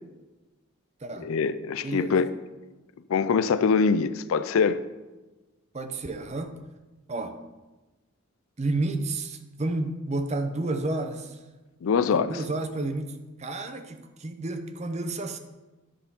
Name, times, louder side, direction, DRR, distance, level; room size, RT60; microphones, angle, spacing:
voice 1, 1.2-2.3 3.1-4.8 11.8-12.4, left 5 dB, 75° left, 0.4 m, -23 dB
voice 2, 1.8-2.2 5.7-6.5 7.1-7.4 8.6-11.4 12.1-15.4, right 2 dB, 30° right, 0.6 m, -31 dB
10.5 x 4.4 x 5.4 m
head